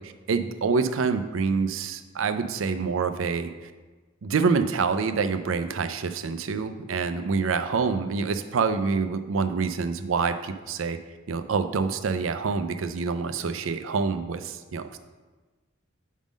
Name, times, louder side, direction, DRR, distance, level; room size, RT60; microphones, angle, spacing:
voice 1, 0.0-3.7 4.2-11.0 11.3-15.0, right 5 dB, 90° right, 10 dB, 0.5 m, -26 dB
7.3 x 3.7 x 5.1 m, 1.3 s
head